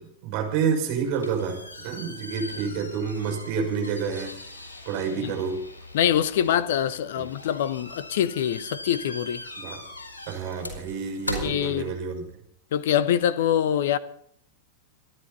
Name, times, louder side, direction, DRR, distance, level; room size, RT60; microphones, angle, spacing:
voice 1, 0.0-1.6 1.8-4.3 4.9-5.6 9.6-9.8 10.3-12.2, right 6 dB, 45° right, 5.7 m, -28 dB
sound 1, 0.9-12.3, left 1 dB, 80° left, 4.6 m, -40 dB
voice 2, 5.9-9.4 11.3-11.9 12.7-14.0, left 10 dB, 55° left, 1.0 m, -24 dB
26.0 x 11.0 x 4.1 m
figure-of-eight pair, 90°, 0 cm